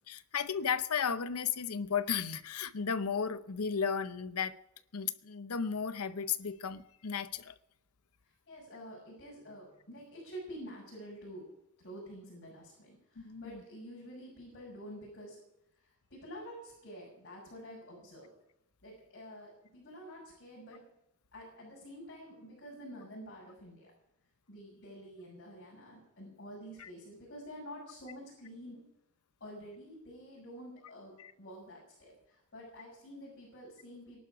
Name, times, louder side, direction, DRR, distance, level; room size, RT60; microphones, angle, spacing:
voice 1, 0.1-4.6 4.9-7.5 13.2-13.6 26.8-26.9 31.2-31.3, left 6 dB, 80° left, 0.8 m, -34 dB
voice 2, 8.5-11.5 11.8-15.4 15.8-18.3 18.8-20.8 21.3-23.9 24.5-28.8 29.4-34.2, equal, 55° left, 6.6 m, -48 dB
20.0 x 11.5 x 5.1 m
head